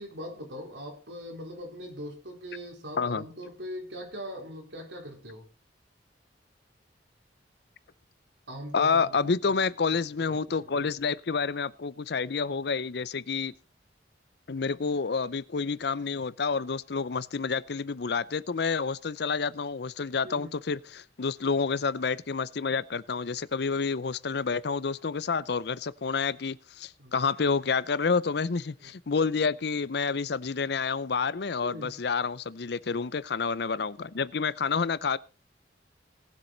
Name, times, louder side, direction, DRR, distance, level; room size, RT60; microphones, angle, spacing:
voice 1, 0.0-5.5 8.5-9.6 9.9-10.9 20.2-20.6 27.0-27.1 28.8-28.9 31.6-31.9, equal, 85° right, 4.1 m, -41 dB
voice 2, 8.7-13.5 14.5-35.2, left 5 dB, 65° left, 0.6 m, -29 dB
19.0 x 7.5 x 4.0 m
head